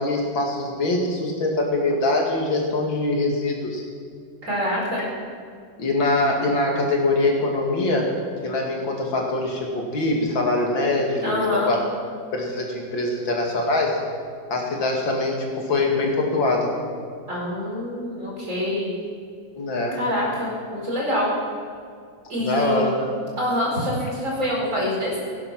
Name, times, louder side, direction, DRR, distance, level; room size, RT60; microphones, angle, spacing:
voice 1, 0.0-3.8 5.8-8.1 8.4-11.8 12.3-14.0 14.5-16.7 19.6-20.0 22.4-23.1, left 2 dB, 80° left, 0 dB, 3.0 m, -23 dB
voice 2, 4.4-5.0 11.2-11.7 17.3-18.9 19.9-21.3 22.3-23.0 23.4-25.2, left 1 dB, 40° right, -4 dB, 5.1 m, -25 dB
17.5 x 10.5 x 6.1 m, 2.2 s
omnidirectional pair, 2.0 m